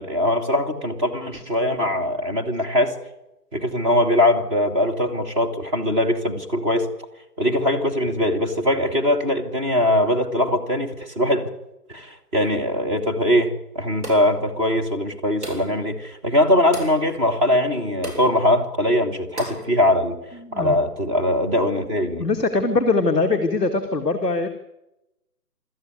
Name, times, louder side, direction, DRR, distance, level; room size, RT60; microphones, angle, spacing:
voice 1, 0.0-3.0 3.5-6.9 7.4-11.5 11.9-20.2 20.5-22.3, left 1 dB, 20° right, 1 dB, 2.0 m, -21 dB
sound 1, 14.0-14.4 15.4-15.8 16.7-17.0 18.0-18.3 19.4-19.7, right 1 dB, 45° right, 7.7 m, -34 dB
voice 2, 20.4-20.7 22.2-24.5, left 3 dB, 5° left, -7 dB, 0.8 m, -22 dB
24.5 x 13.5 x 9.5 m, 0.92 s
figure-of-eight pair, 150°, 47 cm